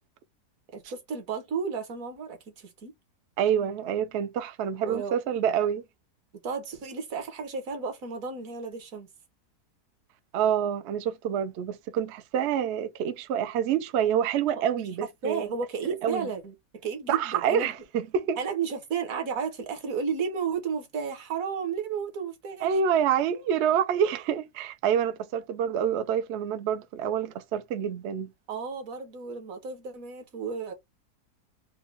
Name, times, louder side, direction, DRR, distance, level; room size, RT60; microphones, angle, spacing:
voice 1, 0.7-2.9 4.8-5.2 6.4-9.1 15.2-17.7 18.4-22.8 28.5-30.7, right 6 dB, 60° right, 1.4 m, -33 dB
voice 2, 3.4-5.8 10.3-15.5 16.0-16.2 17.1-18.4 22.6-28.3, right 8 dB, 80° right, 0.6 m, -27 dB
4.5 x 2.3 x 3.4 m
omnidirectional pair, 1.8 m